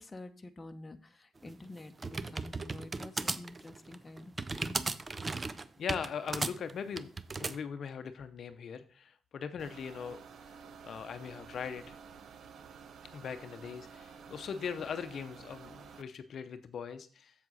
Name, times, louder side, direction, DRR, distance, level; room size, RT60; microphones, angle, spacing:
voice 1, 0.0-4.8, left 2 dB, 20° left, 7 dB, 0.8 m, -48 dB
sound 1, 1.4-7.6, right 3 dB, 25° right, 0.5 m, -36 dB
voice 2, 5.4-7.1 7.4-10.2 10.8-12.0 13.1-17.3, left 6 dB, 55° left, 9 dB, 0.6 m, -40 dB
sound 2, 9.6-16.0, right 6 dB, 60° right, 0.7 m, -51 dB
7.4 x 7.3 x 4.0 m, 0.42 s
cardioid pair, 90°, 0 cm